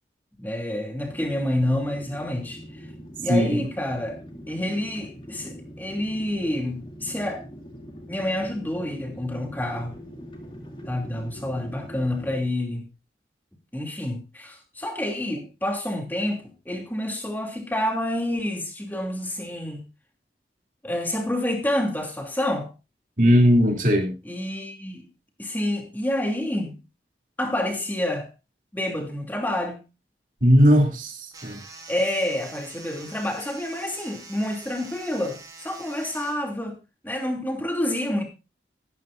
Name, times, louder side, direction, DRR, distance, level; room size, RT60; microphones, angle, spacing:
voice 1, 0.4-2.6 3.2-4.2 4.5-7.4 8.1-9.9 10.9-12.9 13.7-19.8 20.8-22.7 24.3-25.0 25.4-26.8 27.4-28.3 28.7-29.8 31.9-36.8 37.0-38.2, left 1 dB, 10° left, 2.7 m, -28 dB
sound 1, 1.0-12.5, equal, 30° left, 2.8 m, -42 dB
voice 2, 3.2-3.7 23.2-24.1 30.4-31.6, equal, 50° right, 2.9 m, -18 dB
sound 2, 31.3-36.3, right 3 dB, 20° right, 4.1 m, -44 dB
15.0 x 13.5 x 2.6 m
head